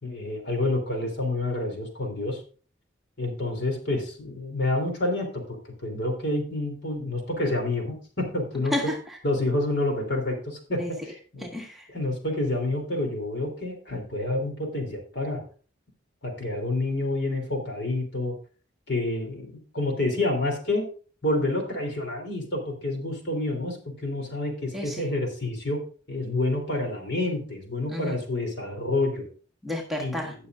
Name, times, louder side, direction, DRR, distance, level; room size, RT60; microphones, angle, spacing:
voice 1, 0.0-2.4 3.2-8.7 9.2-11.5 11.9-15.4 16.2-18.3 18.9-20.8 21.2-23.8 24.0-25.8 26.1-29.2 30.0-30.3, left 2 dB, 60° left, 2 dB, 3.2 m, -28 dB
voice 2, 8.7-9.2 10.8-10.9 11.4-11.9 24.7-25.1 27.9-28.2 29.6-30.3, left 1 dB, ahead, -1 dB, 1.6 m, -31 dB
17.5 x 6.7 x 2.5 m, 0.39 s
head